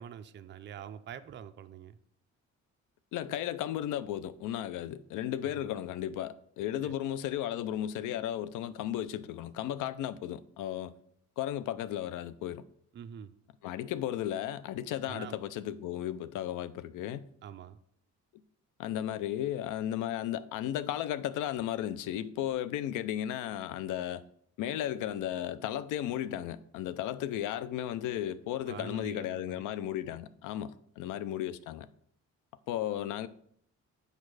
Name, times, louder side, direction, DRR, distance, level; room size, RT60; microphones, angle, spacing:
voice 1, 0.0-2.0 5.4-5.7 6.8-6.9 12.9-13.3 15.1-15.4 17.4-17.8 28.7-29.6, right 8 dB, 40° right, 0.4 m, -45 dB
voice 2, 3.1-10.9 11.4-12.6 13.6-17.3 18.8-24.2 24.6-31.9 32.7-33.3, left 11 dB, 90° left, 0.5 m, -35 dB
6.5 x 5.2 x 4.7 m
cardioid pair, 90°, 30 cm